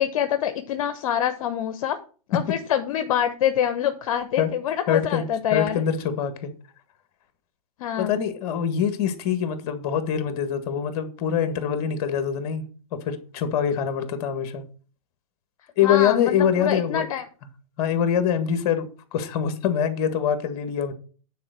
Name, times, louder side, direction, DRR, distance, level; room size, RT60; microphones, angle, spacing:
voice 1, 0.0-2.0 2.3-5.8 7.8-8.1 15.8-17.2, left 10 dB, 65° left, 1.0 m, -25 dB
voice 2, 4.9-5.2 5.5-6.5 8.0-12.6 12.9-14.6 15.8-17.0 17.8-20.9, left 8 dB, 45° left, 1.7 m, -24 dB
9.4 x 4.4 x 6.8 m
hypercardioid pair, 130°, 19 cm